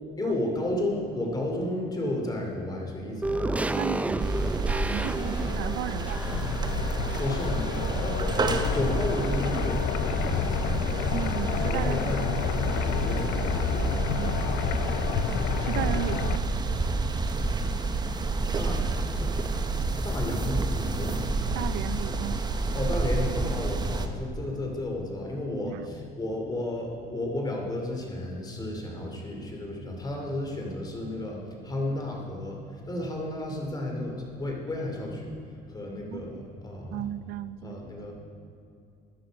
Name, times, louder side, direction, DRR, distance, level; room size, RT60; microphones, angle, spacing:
voice 1, 0.2-3.8 7.2-11.0 11.6-13.7 18.5-19.4 20.0-21.4 22.7-37.1 37.6-38.1, left 1 dB, 25° left, 0 dB, 2.7 m, -33 dB
sound 1, 3.2-7.7 8.0-8.1, right 1 dB, 10° right, 0.5 m, -31 dB
voice 2, 3.4-6.2 11.1-12.4 14.1-14.4 15.6-16.4 21.5-22.4 25.6-25.9 36.1-36.2 36.9-38.0, right 12 dB, 90° right, 15 dB, 0.4 m, -35 dB
sound 2, 4.2-24.1, right 3 dB, 25° right, 0.8 m, -29 dB
sound 3, 4.8-16.4, left 9 dB, 90° left, 0.6 m, -31 dB
13.5 x 10.0 x 5.1 m, 2.6 s
cardioid pair, 110°, 17 cm